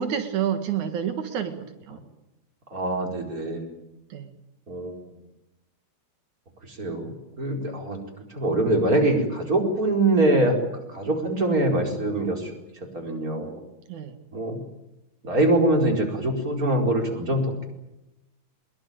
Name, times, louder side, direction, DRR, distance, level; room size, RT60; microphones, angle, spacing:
voice 1, 0.0-2.0 4.1-4.3 13.9-14.2, right 8 dB, 80° right, 8 dB, 3.1 m, -29 dB
voice 2, 2.7-3.7 4.7-5.0 6.6-8.0 8.3-10.6 10.9-13.7 14.3-14.6 15.2-17.7, right 1 dB, 30° right, 3 dB, 5.1 m, -24 dB
23.5 x 22.0 x 9.0 m, 0.93 s
omnidirectional pair, 3.4 m